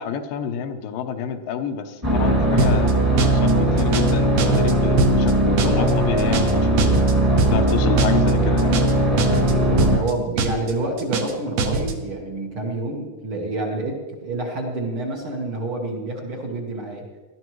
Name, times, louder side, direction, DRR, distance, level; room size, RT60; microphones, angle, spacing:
voice 1, 0.0-2.9 3.3-7.0 7.5-8.8, left 7 dB, 80° left, 6 dB, 2.6 m, -29 dB
sound 1, 2.0-10.0, right 1 dB, 15° right, 1.5 m, -19 dB
sound 2, 2.6-2.9 3.2-3.5 3.8-4.1 4.4-4.7 5.0-5.3 5.6-5.9 6.2-6.5 6.8-7.1 7.4-7.7 8.0-8.3 8.6-8.9 9.2-9.5 9.8-10.1 10.4-10.7 11.0-11.3 11.6-11.9, right 4 dB, 65° right, 1.8 m, -22 dB
voice 2, 5.6-6.1 6.3-6.7 9.3-17.1, right 2 dB, 50° right, -1 dB, 1.9 m, -28 dB
19.0 x 12.5 x 3.1 m, 1.3 s
omnidirectional pair, 3.9 m